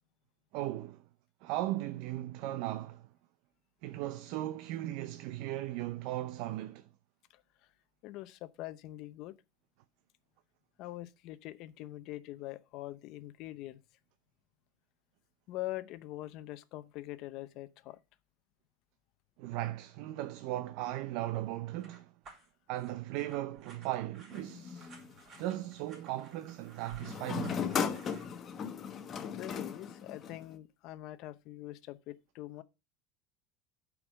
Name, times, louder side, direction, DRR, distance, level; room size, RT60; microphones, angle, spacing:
voice 1, 0.5-1.0 1.4-3.1 3.8-6.9 19.4-22.1 22.7-24.9 25.4-27.6, right 15 dB, 65° right, 0.6 m, -37 dB
voice 2, 8.0-9.4 10.8-13.8 15.5-18.0 29.2-32.6, left 16 dB, 55° left, 0.7 m, -43 dB
sound 1, 21.8-28.2, right 4 dB, 35° right, 3.8 m, -55 dB
sound 2, 24.3-25.6 27.0-30.6, left 7 dB, 30° left, 1.0 m, -37 dB
8.7 x 4.8 x 6.3 m
supercardioid pair, 135°, 0 cm